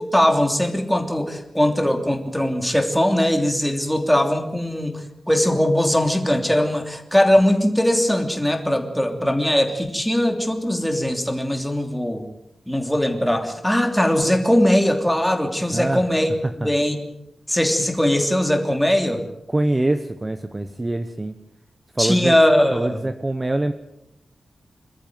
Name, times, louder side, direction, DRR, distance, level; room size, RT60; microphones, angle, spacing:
voice 1, 0.1-12.2 12.7-16.3 16.6-17.0 17.5-19.2 22.0-23.0, left 1 dB, 5° left, 4 dB, 3.1 m, -20 dB
voice 2, 15.7-16.0 16.6-16.7 19.5-21.3 21.9-22.3 22.7-23.7, right 2 dB, 20° right, 9 dB, 1.1 m, -24 dB
26.5 x 14.0 x 9.3 m, 0.86 s
wide cardioid pair, 135°, 0 cm